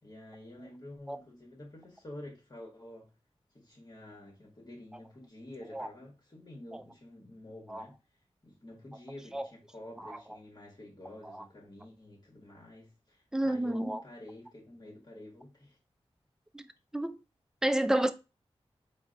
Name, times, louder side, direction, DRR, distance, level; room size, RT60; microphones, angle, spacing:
voice 1, 0.0-3.1 3.5-15.8, left 1 dB, 40° left, 1.1 m, -49 dB
voice 2, 13.3-14.0 16.5-16.6 16.9-17.2 17.6-18.1, right 1 dB, 5° right, 0.4 m, -29 dB
3.8 x 2.1 x 3.7 m
cardioid pair, 45°, 11 cm